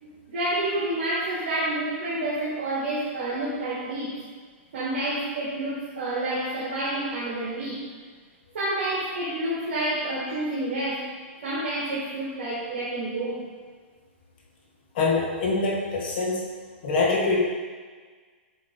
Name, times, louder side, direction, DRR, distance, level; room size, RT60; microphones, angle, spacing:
voice 1, 0.0-4.2 4.7-7.8 8.5-11.1 11.4-13.5, right 1 dB, 65° right, -7 dB, 1.5 m, -29 dB
voice 2, 14.9-16.4 16.8-17.4, left 3 dB, 45° left, -3 dB, 1.5 m, -24 dB
7.8 x 3.3 x 3.8 m, 1.5 s
hypercardioid pair, 165°, 7 cm